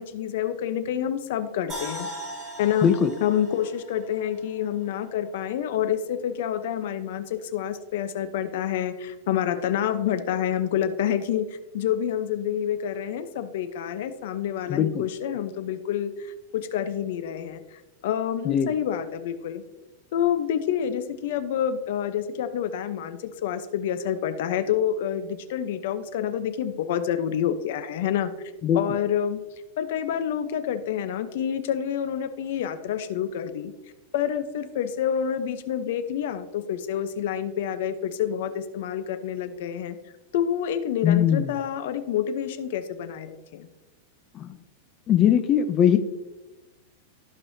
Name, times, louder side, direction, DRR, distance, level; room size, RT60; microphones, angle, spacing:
voice 1, 0.0-2.1 2.6-2.9 3.2-11.5 11.7-17.6 18.0-19.6 20.1-28.3 28.7-29.4 29.8-33.7 34.1-40.0 40.3-43.7, left 9 dB, 60° left, 10 dB, 0.8 m, -28 dB
sound 1, 1.7-4.9 5.2-5.3, equal, 15° right, 2.9 m, -39 dB
voice 2, 2.8-3.1 14.7-15.1 18.5-18.7 28.6-28.8 41.0-41.5 44.3-44.6 45.1-46.0, left 9 dB, 25° left, 8 dB, 0.5 m, -20 dB
14.5 x 5.4 x 2.8 m, 1.1 s
supercardioid pair, 155°, 0 cm